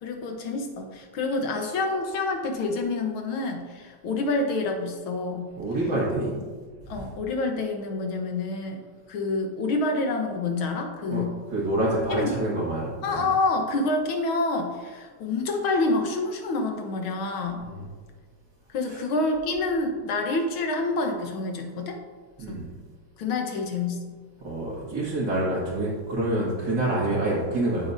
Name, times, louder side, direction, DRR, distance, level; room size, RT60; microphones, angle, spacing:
voice 1, 0.0-5.5 6.9-8.8 9.1-11.3 12.1-12.3 13.0-17.6 18.7-22.0 22.5-22.6 23.2-24.2, left 3 dB, 85° left, 3 dB, 2.0 m, -27 dB
voice 2, 5.6-6.4 6.9-7.1 11.1-13.3 17.6-17.9 18.8-19.0 22.4-22.7 24.4-27.9, right 1 dB, 55° right, -8 dB, 2.6 m, -27 dB
14.0 x 7.6 x 2.7 m, 1.5 s
omnidirectional pair, 2.2 m